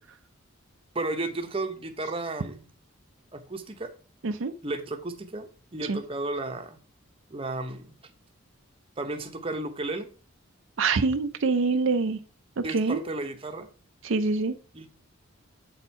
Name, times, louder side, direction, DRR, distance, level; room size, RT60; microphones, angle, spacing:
voice 1, 0.9-2.7 3.3-3.9 4.6-6.8 7.3-8.0 9.0-10.1 12.6-13.7 14.7-14.9, right 2 dB, 25° right, 6 dB, 0.8 m, -33 dB
voice 2, 10.8-12.2 12.6-13.0 14.0-14.5, right 4 dB, 65° right, 8 dB, 0.5 m, -25 dB
8.1 x 4.3 x 4.5 m, 0.38 s
head